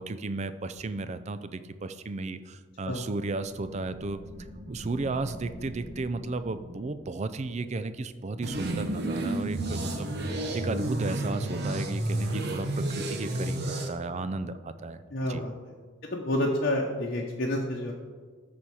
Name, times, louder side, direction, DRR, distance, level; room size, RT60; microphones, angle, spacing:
voice 1, 0.0-4.2 4.7-15.0 15.3-15.4, right 3 dB, 35° right, 12 dB, 0.4 m, -34 dB
sound 1, 3.4-8.7, equal, 75° right, 1.8 m, -46 dB
sound 2, 8.4-13.9, right 1 dB, 55° right, 1.0 m, -31 dB
voice 2, 15.1-15.7 16.1-17.9, left 1 dB, 50° left, -3 dB, 0.9 m, -29 dB
13.0 x 4.4 x 4.8 m, 1.5 s
head